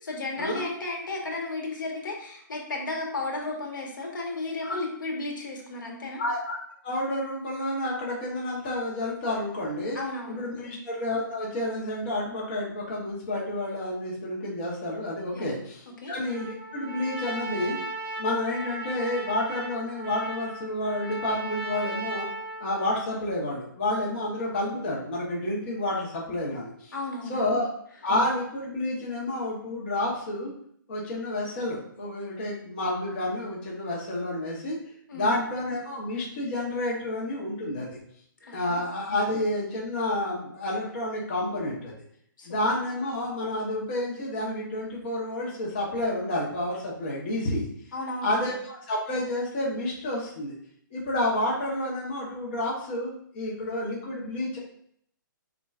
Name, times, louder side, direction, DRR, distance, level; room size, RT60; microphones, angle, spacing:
voice 1, 0.0-6.2 9.9-10.8 15.3-15.6 16.0-16.1 26.9-27.7 35.1-35.3 38.4-38.8 42.4-42.8 47.9-48.4, left 2 dB, 70° left, 0 dB, 1.3 m, -34 dB
voice 2, 6.2-6.6 6.8-10.0 10.3-17.8 18.2-22.3 22.6-26.9 27.3-27.7 28.0-30.5 30.9-34.8 35.1-38.0 38.5-41.9 42.5-47.7 48.2-50.5 50.9-54.6, left 1 dB, 30° left, -5 dB, 0.9 m, -30 dB
Trumpet, 16.2-23.0, right 2 dB, 40° right, 1.5 m, -37 dB
4.3 x 3.7 x 2.4 m, 0.66 s
hypercardioid pair, 170°, 11 cm